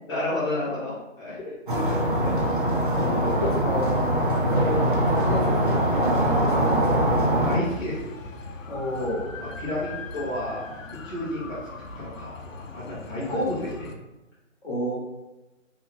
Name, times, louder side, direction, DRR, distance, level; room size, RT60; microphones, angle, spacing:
voice 1, 0.1-2.3 7.4-8.0 9.6-10.6 11.0-11.6 11.9-13.9, left 1 dB, 20° left, -11 dB, 0.7 m, -31 dB
sound 1, 1.7-7.6, right 1 dB, 40° right, 0.5 m, -22 dB
voice 2, 3.0-4.2 4.5-7.1 8.7-9.3 13.3-13.5 14.6-14.9, equal, 40° left, -4 dB, 1.0 m, -31 dB
sound 2, 7.7-13.9, left 2 dB, 85° left, 0.6 m, -40 dB
2.8 x 2.5 x 3.6 m, 1.0 s
figure-of-eight pair, 155°, 39 cm